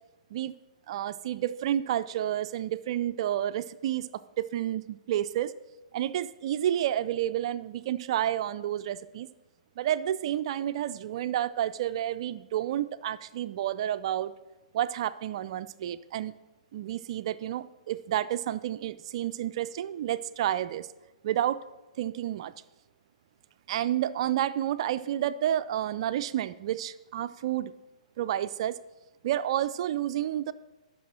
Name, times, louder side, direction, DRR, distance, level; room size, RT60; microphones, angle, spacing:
voice 1, 0.9-4.1 4.4-5.5 5.9-9.3 9.8-14.3 14.7-16.3 16.7-20.9 21.2-21.6 22.0-22.5 23.7-27.7 28.2-28.8 29.2-30.5, right 11 dB, 50° right, 14 dB, 0.4 m, -30 dB
12.5 x 6.1 x 4.3 m, 1.0 s
hypercardioid pair, 135°, 4 cm